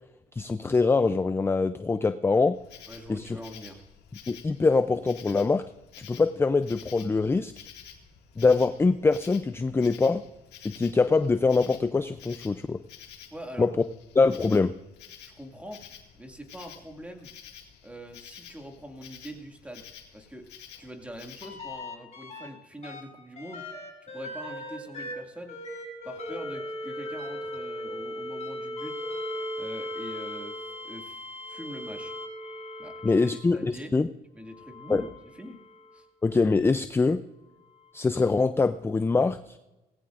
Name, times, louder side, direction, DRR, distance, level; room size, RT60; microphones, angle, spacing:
voice 1, 0.3-2.6 3.1-3.4 4.3-5.6 6.0-7.7 8.4-10.2 10.6-12.8 13.6-13.7 14.2-14.7 33.0-34.1 34.9-35.0 36.2-37.2 37.9-39.6, left 4 dB, 15° left, 12 dB, 0.4 m, -24 dB
Insect, 2.5-21.7, left 9 dB, 85° left, 2.0 m, -50 dB
voice 2, 2.9-3.8 13.3-13.7 15.2-15.8 16.1-17.3 17.8-20.5 20.8-23.7 24.0-25.6 26.0-29.0 29.6-31.2 31.5-32.1 32.8-33.9 34.3-35.1 35.3-35.6 35.9-36.1, equal, 5° right, 3 dB, 2.2 m, -43 dB
sound 1, 21.4-22.5 22.8-33.6 34.5-36.0 37.7-37.8, left 1 dB, 40° left, 5.9 m, -38 dB
19.0 x 15.5 x 2.5 m, 1.0 s
cardioid pair, 110°, 17 cm